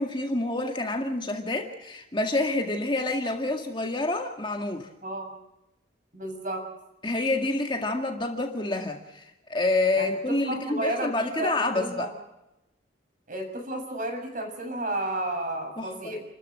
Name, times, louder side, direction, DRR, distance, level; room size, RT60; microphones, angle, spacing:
voice 1, 0.0-4.9 7.0-9.2 9.5-12.1 15.8-16.1, left 2 dB, 25° left, 3 dB, 1.9 m, -28 dB
voice 2, 5.0-5.3 6.1-6.6 10.0-12.1 13.3-16.2, right 1 dB, 40° right, 4 dB, 6.6 m, -32 dB
29.5 x 14.0 x 7.7 m, 0.91 s
head